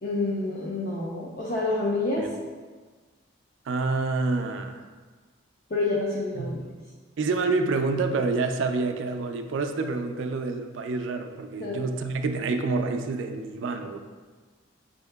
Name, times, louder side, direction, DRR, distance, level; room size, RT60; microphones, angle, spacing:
voice 1, 0.0-2.3 5.7-6.6 11.6-11.8, left 2 dB, 45° left, -6 dB, 0.5 m, -28 dB
voice 2, 3.7-4.8 6.4-6.5 7.2-14.0, right 3 dB, 70° right, 6 dB, 0.3 m, -27 dB
6.3 x 2.8 x 2.2 m, 1.4 s
head